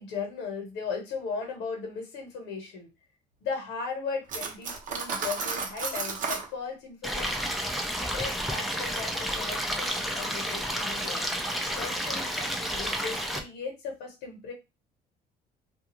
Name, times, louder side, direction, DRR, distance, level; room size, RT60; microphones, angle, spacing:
voice 1, 0.0-2.9 3.4-7.5 8.1-11.2 11.7-14.5, left 5 dB, 85° left, 3 dB, 1.1 m, -37 dB
Cutlery silverware, 4.3-6.5, right 5 dB, 50° right, 0.7 m, -32 dB
Stream, 7.0-13.4, equal, ahead, 0.5 m, -31 dB
2.4 x 2.4 x 2.9 m, 0.25 s
cardioid pair, 110°, 17 cm